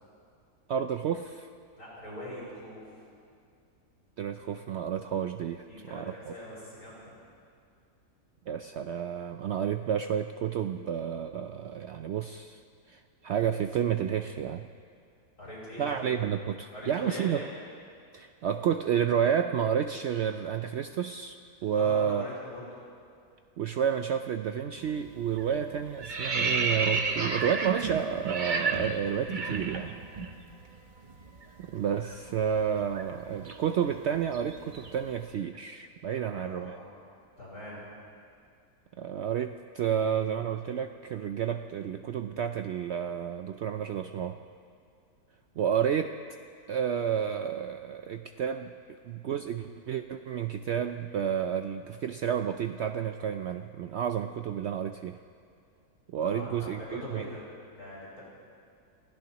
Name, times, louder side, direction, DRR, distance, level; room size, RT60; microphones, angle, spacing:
voice 1, 0.7-1.5 4.2-5.7 5.9-6.3 8.5-14.7 15.8-17.4 18.1-22.2 23.6-30.0 31.6-36.8 39.0-44.4 45.6-46.1 46.7-55.2 56.1-57.3, right 8 dB, 70° right, 7 dB, 0.6 m, -30 dB
voice 2, 1.8-3.1 5.7-7.2 15.4-16.1 16.7-17.6 21.7-22.6 36.1-36.9 37.4-37.8 56.2-56.5 56.9-57.4 57.7-58.2, left 1 dB, 55° left, -8 dB, 6.2 m, -42 dB
sound 1, 24.8-25.1 25.4-30.3 30.6-30.8 31.1-35.1, right 4 dB, 35° right, 0.9 m, -32 dB
29.5 x 16.0 x 3.0 m, 2.3 s
omnidirectional pair, 1.6 m